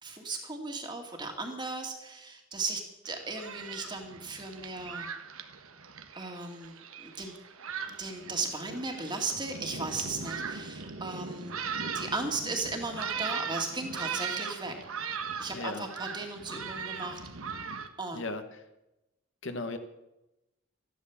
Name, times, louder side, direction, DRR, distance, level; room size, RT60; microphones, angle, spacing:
voice 1, 0.0-5.1 6.2-6.7 7.0-7.3 8.0-11.6 11.9-14.7 15.4-17.2 18.0-18.2, right 3 dB, 20° right, 3 dB, 2.1 m, -36 dB
Thunderstorm, 3.1-17.9, right 5 dB, 75° right, 1.3 m, -39 dB
voice 2, 15.5-15.8 18.1-18.6 19.4-19.8, left 2 dB, 60° left, 7 dB, 1.3 m, -36 dB
14.0 x 11.5 x 7.2 m, 0.94 s
head